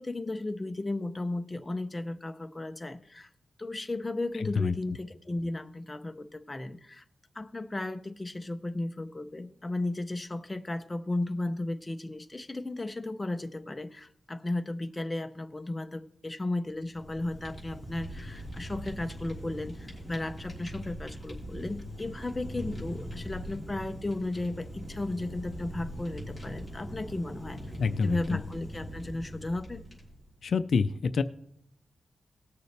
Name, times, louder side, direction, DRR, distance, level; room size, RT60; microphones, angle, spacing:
voice 1, 0.0-3.3 3.6-7.0 7.3-27.6 28.0-29.8, left 2 dB, 15° left, 7 dB, 0.6 m, -35 dB
voice 2, 4.4-4.7 27.8-28.4 30.4-31.2, left 5 dB, 65° left, 11 dB, 0.4 m, -27 dB
Fire, 16.7-30.3, equal, 5° right, 3.4 m, -41 dB
19.0 x 6.7 x 3.3 m, 0.73 s
wide cardioid pair, 135°, 0 cm